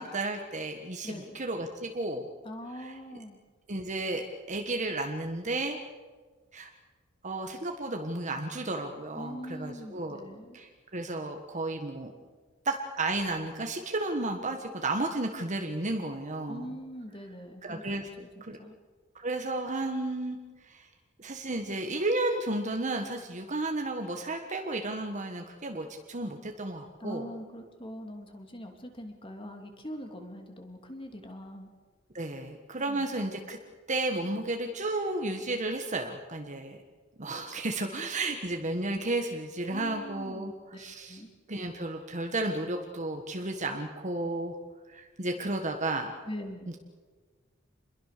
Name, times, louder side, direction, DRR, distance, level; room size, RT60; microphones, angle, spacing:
voice 1, 0.0-2.2 2.7-3.2 3.7-5.8 6.5-6.7 7.2-10.2 10.5-12.1 12.6-16.8 17.6-18.1 18.4-18.6 19.1-20.4 20.7-20.9 21.2-27.3 32.1-33.6 33.9-36.8 37.2-40.5 40.8-41.2 41.5-44.5 44.9-46.1 46.7-46.8, right 2 dB, 40° right, 4 dB, 1.5 m, -33 dB
voice 2, 1.0-1.4 2.4-3.4 9.2-10.6 16.5-17.8 18.2-18.7 27.0-31.7 32.9-33.1 39.7-41.3 46.3-46.7, equal, 25° left, 4 dB, 3.0 m, -42 dB
27.5 x 22.0 x 6.8 m, 1.4 s
head